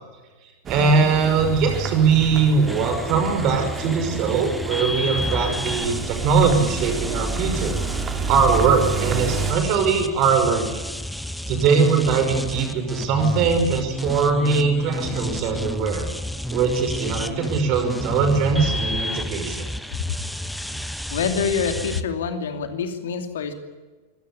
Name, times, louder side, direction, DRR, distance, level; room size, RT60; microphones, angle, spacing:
sound 1, 0.7-9.5, right 4 dB, 25° right, 2.9 m, -30 dB
voice 1, 0.7-7.8 8.3-10.8 11.5-16.1 16.5-19.7, right 5 dB, 40° right, 7 dB, 5.7 m, -21 dB
sound 2, 2.7-22.0, left 1 dB, ahead, 1.2 m, -31 dB
voice 2, 21.1-23.5, left 6 dB, 60° left, 7 dB, 2.7 m, -26 dB
25.0 x 17.5 x 8.4 m, 1.3 s
figure-of-eight pair, 90°, 0 cm